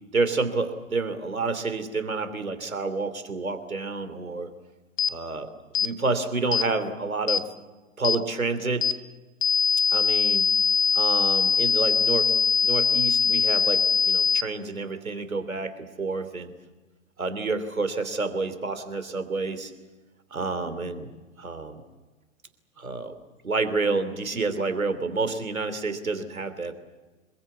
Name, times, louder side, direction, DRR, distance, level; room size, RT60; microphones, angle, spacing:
voice 1, 0.1-4.5 5.1-5.5 5.8-7.4 8.0-8.9 9.9-10.5 10.9-12.3 12.6-16.5 17.2-19.7 20.3-21.1 21.4-21.8 22.8-23.1 23.4-26.7, right 3 dB, 90° right, 10 dB, 3.2 m, -29 dB
sound 1, 5.0-5.1 5.8-5.9 6.5-6.7 7.3-7.4 8.0-8.2 8.8-9.0 9.4-14.4, left 6 dB, 70° left, 1.0 m, -22 dB
26.5 x 22.5 x 8.5 m, 1.2 s
figure-of-eight pair, 115°, 40 cm